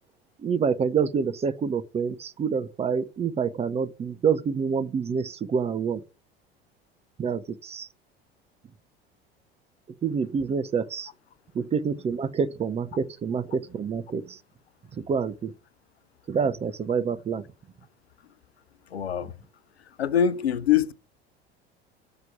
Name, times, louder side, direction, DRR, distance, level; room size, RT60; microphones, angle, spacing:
voice 1, 0.4-6.0 7.2-7.9 10.0-11.1 11.5-14.4 14.9-15.5 16.3-17.4, right 6 dB, 20° right, 0.6 m, -27 dB
voice 2, 18.9-19.3 20.0-20.9, left 9 dB, 80° left, 0.6 m, -23 dB
7.2 x 5.9 x 5.0 m
figure-of-eight pair, 70°, 31 cm